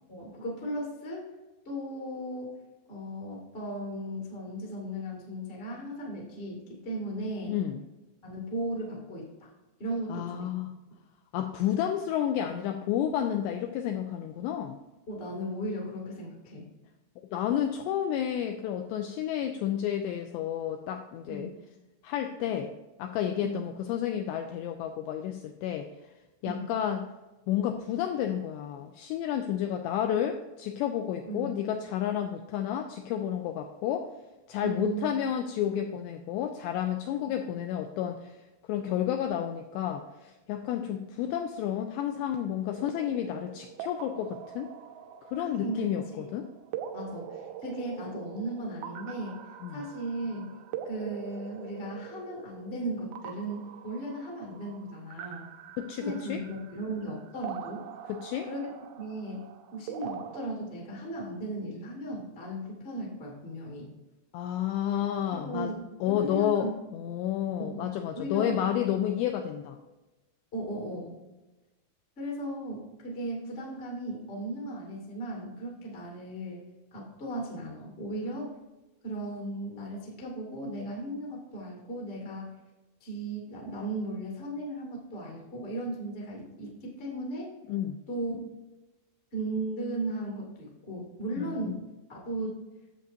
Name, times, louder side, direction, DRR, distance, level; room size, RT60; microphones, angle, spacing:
voice 1, 0.1-1.3 1.6-2.5 2.9-7.6 8.2-9.5 9.8-10.5 11.6-11.8 15.1-16.6 21.3-21.6 23.4-23.6 26.4-26.7 31.3-31.5 34.6-35.1 45.4-46.3 46.9-50.6 50.8-55.5 55.9-57.9 58.5-58.7 59.0-63.8 65.3-65.8 66.0-66.7 67.6-67.9 68.1-68.6 70.5-71.2 72.2-76.6 76.9-78.5 79.0-82.5 83.0-87.5 88.1-88.4 89.3-91.8 92.1-92.6, right 1 dB, 55° left, -2 dB, 0.6 m, -36 dB
voice 2, 7.5-7.8 10.1-10.7 11.3-14.8 17.3-21.5 22.0-22.7 23.0-25.9 26.4-27.0 27.5-34.1 34.5-38.3 38.7-44.7 45.3-46.0 46.3-46.5 49.6-49.9 55.8-56.4 58.1-58.5 64.3-65.7 66.0-69.8 87.7-88.0 91.4-91.8, left 10 dB, 90° left, 5 dB, 2.5 m, -31 dB
sound 1, 42.7-60.5, right 9 dB, 90° right, 3.1 m, -44 dB
10.5 x 7.6 x 2.7 m, 1.1 s
omnidirectional pair, 5.5 m